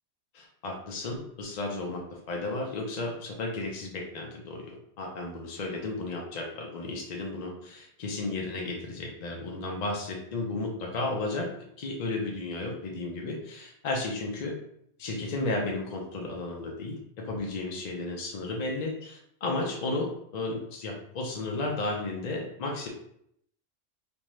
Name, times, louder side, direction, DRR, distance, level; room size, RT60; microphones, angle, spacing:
voice 1, 0.3-11.5 11.8-14.6 15.0-22.9, left 2 dB, 70° left, 0 dB, 0.4 m, -33 dB
2.5 x 2.2 x 3.0 m, 0.71 s
omnidirectional pair, 1.3 m